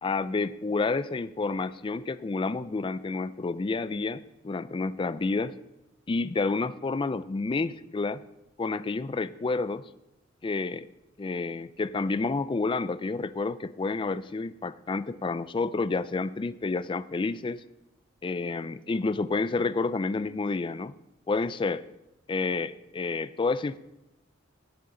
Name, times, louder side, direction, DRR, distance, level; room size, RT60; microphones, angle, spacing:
voice 1, 0.0-5.5 6.1-8.2 8.6-9.8 10.4-10.9 11.2-17.6 18.2-20.9 21.3-21.8 22.3-23.8, left 3 dB, 25° left, 15 dB, 0.4 m, -29 dB
17.5 x 7.8 x 3.8 m, 0.93 s
head